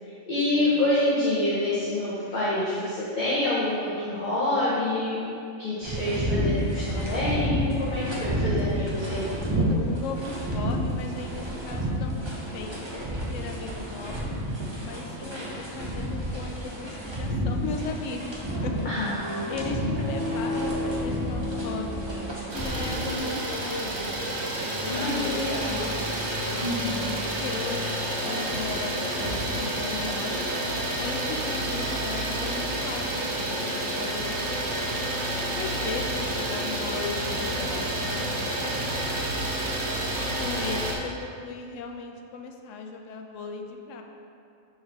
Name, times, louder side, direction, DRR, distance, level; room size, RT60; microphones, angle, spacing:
voice 1, 0.3-5.3 5.6-9.3 18.8-19.5 19.8-19.9 24.8-25.9 26.6-27.2, left 1 dB, 40° left, -11 dB, 1.3 m, -27 dB
sound 1, 5.8-23.6, equal, 25° right, 0.9 m, -30 dB
voice 2, 9.4-12.8 13.3-14.4 14.8-18.9 19.5-22.0 22.5-24.3 24.6-26.1 27.4-30.5 30.9-35.0 35.6-39.3 40.3-44.0, left 4 dB, 85° left, 3 dB, 1.0 m, -37 dB
Idling, 22.5-41.0, right 1 dB, 65° right, 1.1 m, -29 dB
4.8 x 4.4 x 5.8 m, 2.5 s
omnidirectional pair, 1.3 m